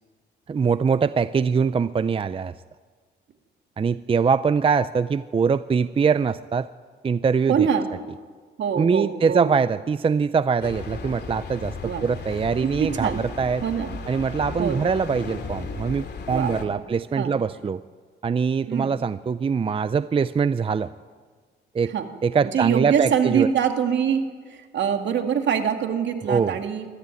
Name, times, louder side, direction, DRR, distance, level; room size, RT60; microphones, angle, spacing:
voice 1, 0.5-2.5 3.8-6.7 7.0-7.7 8.8-13.6 14.1-17.8 18.2-20.9 21.7-21.9 22.2-23.5 26.3-26.6, right 5 dB, 30° right, 14 dB, 0.5 m, -23 dB
voice 2, 7.5-7.9 8.6-9.5 11.8-12.1 12.8-13.3 13.6-14.0 14.6-14.8 16.3-16.8 17.2-17.3 18.7-18.9 21.9-22.1 22.5-26.9, right 7 dB, 65° right, 5 dB, 2.3 m, -24 dB
sound 1, 10.6-16.7, left 4 dB, 60° left, 2.6 m, -35 dB
23.0 x 13.5 x 9.2 m, 1.5 s
cardioid pair, 90°, 20 cm